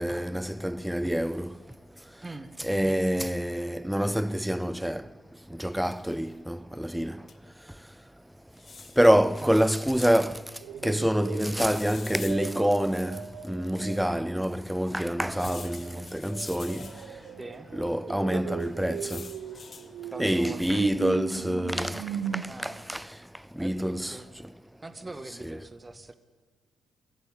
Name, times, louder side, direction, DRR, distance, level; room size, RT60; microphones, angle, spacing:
voice 1, 0.0-1.5 2.6-5.0 5.5-7.2 9.0-10.4 10.8-16.9 17.7-19.3 20.2-22.0 22.3-23.0 23.6-24.2 25.4-25.6, equal, 5° right, 0.7 m, -26 dB
voice 2, 2.2-2.5 2.8-3.3 9.4-9.5 17.4-17.7 18.1-18.6 20.1-20.9 22.4-22.9 23.6-24.3 24.8-26.1, right 2 dB, 20° right, 1.9 m, -42 dB
sound 1, 5.7-6.3 7.3-7.4 7.6-7.7 8.5-10.4 11.7-13.3 13.9-14.0 15.3-17.3 18.6-19.9 20.4-20.7, left 5 dB, 40° left, 1.6 m, -47 dB
sound 2, 10.6-14.3 15.5-22.4, right 9 dB, 65° right, 1.0 m, -38 dB
20.5 x 15.0 x 9.9 m
figure-of-eight pair, 45°, 0 cm